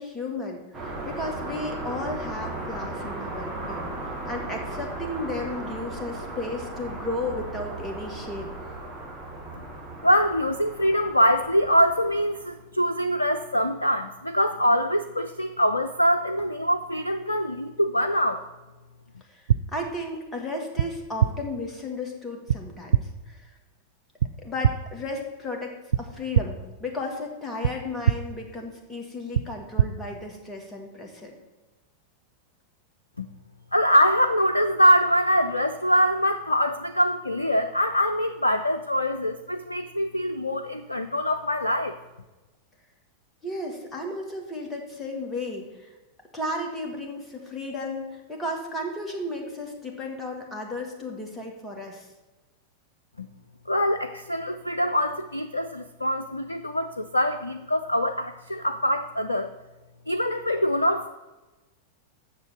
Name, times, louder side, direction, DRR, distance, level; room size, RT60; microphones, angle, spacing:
voice 1, 0.0-8.6 19.2-23.0 23.3-23.5 24.4-31.3 43.4-45.9 46.3-52.1, left 2 dB, 10° left, 0 dB, 2.0 m, -34 dB
sound 1, 0.7-12.6, right 2 dB, 20° right, 4.1 m, -36 dB
voice 2, 10.0-18.4 33.2-33.3 33.7-42.0 53.2-53.3 53.7-59.5 60.1-61.1, equal, 85° left, 8 dB, 0.5 m, -24 dB
sound 2, 19.5-19.6 20.8-20.9 21.2-21.3 22.5-22.6 22.9-23.0 24.2-24.3 24.6-24.7 25.9-26.0 26.3-26.4 27.6-27.7 28.0-28.2 29.3-29.4 29.8-29.9, right 10 dB, 65° right, 0.3 m, -20 dB
8.0 x 6.8 x 7.7 m, 1.1 s
figure-of-eight pair, 90°, 0 cm